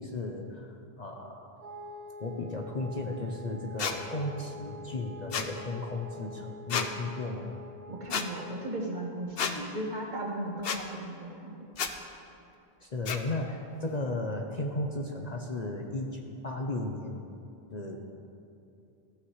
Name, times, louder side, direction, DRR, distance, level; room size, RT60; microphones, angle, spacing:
voice 1, 0.0-1.5 2.2-7.5 12.8-17.2 17.7-18.1, left 2 dB, 45° left, 1 dB, 0.9 m, -35 dB
Wind instrument woodwind instrument, 1.6-9.0, left 2 dB, 90° right, 1.8 m, -46 dB
sound 1, 3.8-4.0 5.3-5.5 6.7-6.9 8.1-8.3 9.4-9.5 10.6-10.8 11.7-11.9 13.1-13.2, left 7 dB, 70° left, 1.0 m, -30 dB
voice 2, 7.9-11.6, right 1 dB, 45° right, -1 dB, 1.7 m, -36 dB
15.0 x 14.5 x 3.2 m, 2.6 s
omnidirectional pair, 1.0 m